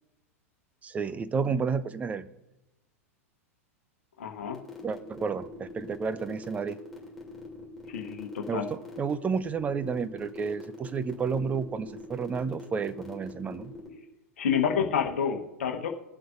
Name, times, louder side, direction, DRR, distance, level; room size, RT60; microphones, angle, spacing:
voice 1, 0.8-2.3 4.8-6.8 8.5-13.7, right 5 dB, 20° right, 13 dB, 0.6 m, -31 dB
voice 2, 4.2-4.6 7.9-8.7 14.4-15.9, left 7 dB, 65° left, 4 dB, 1.1 m, -29 dB
sound 1, 4.5-13.9, left 3 dB, ahead, 2.8 m, -44 dB
20.5 x 7.7 x 2.6 m, 0.98 s
figure-of-eight pair, 95°, 8 cm